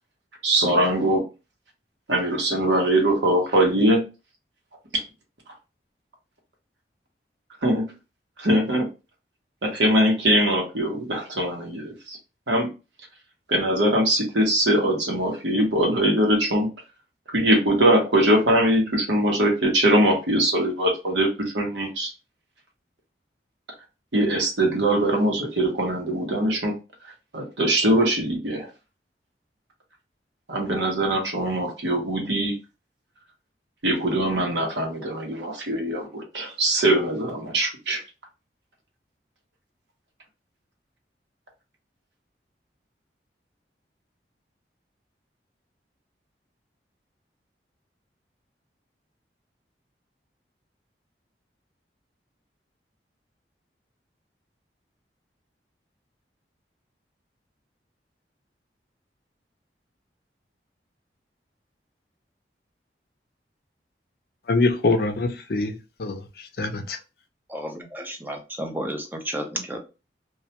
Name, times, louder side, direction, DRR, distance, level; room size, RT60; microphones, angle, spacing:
voice 1, 0.4-1.3 2.1-4.0 7.6-7.8 8.4-8.9 9.6-12.2 12.5-12.7 13.5-16.7 17.3-22.1 24.1-26.8 27.3-28.7 30.5-32.6 33.8-38.0, right 1 dB, 90° right, 0.9 m, -22 dB
voice 2, 64.5-67.0, left 3 dB, 60° left, 0.5 m, -24 dB
voice 3, 67.5-69.8, right 1 dB, 10° right, 0.5 m, -32 dB
2.2 x 2.1 x 2.8 m
head